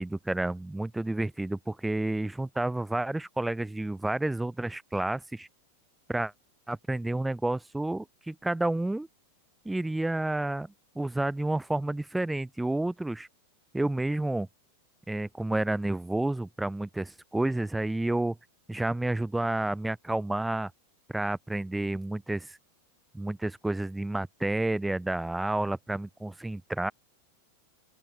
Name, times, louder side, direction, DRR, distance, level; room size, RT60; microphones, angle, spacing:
voice 1, 0.0-5.5 6.1-6.3 6.7-9.1 9.7-13.3 13.7-14.5 15.1-18.4 18.7-20.7 21.1-22.6 23.1-26.9, right 2 dB, 5° right, 0.4 m, -30 dB
open air
figure-of-eight pair, 90°, 0 cm